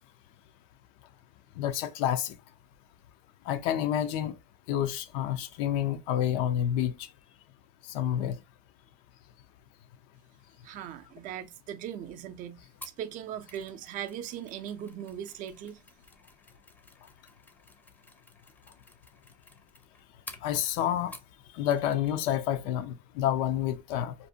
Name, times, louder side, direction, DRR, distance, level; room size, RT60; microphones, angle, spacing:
voice 1, 1.6-2.4 3.5-4.3 4.7-7.1 7.9-8.4 20.4-21.1 21.5-24.2, left 10 dB, 80° left, 0.4 m, -29 dB
voice 2, 10.6-15.8, right 10 dB, 50° right, 0.4 m, -39 dB
Mechanisms, 12.8-21.4 21.7-22.2 22.4-22.6, left 2 dB, 10° left, 0.5 m, -52 dB
2.6 x 2.1 x 2.5 m
cardioid pair, 130°, 18 cm